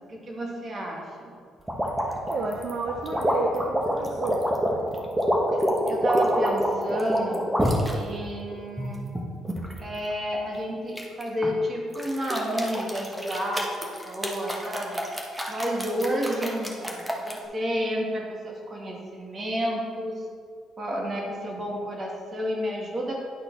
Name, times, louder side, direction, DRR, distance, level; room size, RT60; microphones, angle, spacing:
voice 1, 0.1-1.3 5.9-7.4 7.9-9.0 9.8-15.0 15.5-17.0 17.3-20.2 20.8-23.2, equal, 40° right, -1 dB, 1.9 m, -30 dB
sound 1, 1.7-7.9 8.5-9.8 11.0-11.5 11.9-17.4, equal, 10° right, 1.3 m, -27 dB
voice 2, 2.3-4.4, right 3 dB, 65° right, 1 dB, 0.6 m, -31 dB
10.5 x 4.0 x 4.1 m, 2.1 s
supercardioid pair, 65°, 0 cm